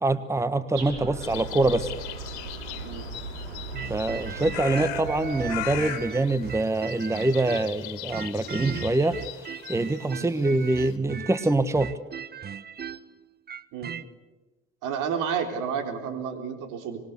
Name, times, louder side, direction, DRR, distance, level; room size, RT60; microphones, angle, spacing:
voice 1, 0.0-1.9 3.9-11.9, right 2 dB, 10° right, 13 dB, 1.3 m, -25 dB
sound 1, 0.7-5.9, right 4 dB, 85° right, 6.4 m, -37 dB
sound 2, 1.2-11.0, left 17 dB, 75° left, 2.1 m, -40 dB
sound 3, 3.7-7.8 8.1-14.1, right 7 dB, 30° right, 1.0 m, -38 dB
voice 2, 14.8-17.0, right 7 dB, 65° right, 6 dB, 4.0 m, -31 dB
25.5 x 21.5 x 8.2 m, 1.2 s
hypercardioid pair, 70°, 33 cm